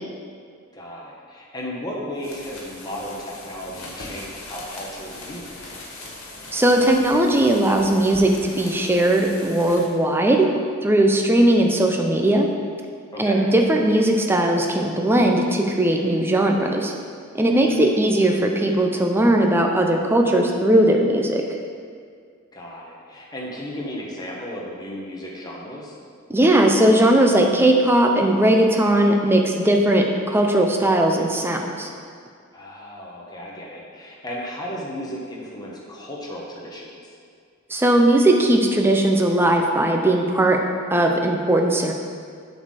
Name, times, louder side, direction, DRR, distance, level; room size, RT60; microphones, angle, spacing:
voice 1, 0.7-5.8 13.1-13.5 17.5-17.9 22.5-26.0 32.5-37.1, equal, 20° left, -4 dB, 1.0 m, -35 dB
sound 1, 2.1-9.8, left 2 dB, 70° left, 1.6 m, -39 dB
voice 2, 6.5-10.5 10.8-12.5 13.2-16.9 17.4-21.4 26.3-31.9 37.7-40.6 40.9-41.9, right 1 dB, 10° right, 2 dB, 0.5 m, -18 dB
7.7 x 4.1 x 6.3 m, 2.1 s
head